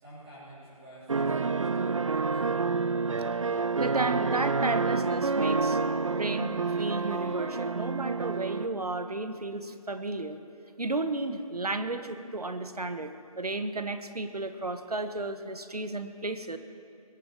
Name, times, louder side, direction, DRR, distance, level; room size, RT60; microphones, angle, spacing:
voice 1, 0.0-2.4, right 1 dB, 10° right, -13 dB, 3.9 m, -49 dB
sound 1, 1.1-8.7, right 4 dB, 55° right, 0.5 m, -28 dB
voice 2, 3.4-5.8 6.1-10.4 10.8-16.6, right 2 dB, 85° right, 9 dB, 1.3 m, -33 dB
21.5 x 8.0 x 7.6 m, 2.4 s
figure-of-eight pair, 165°, 19 cm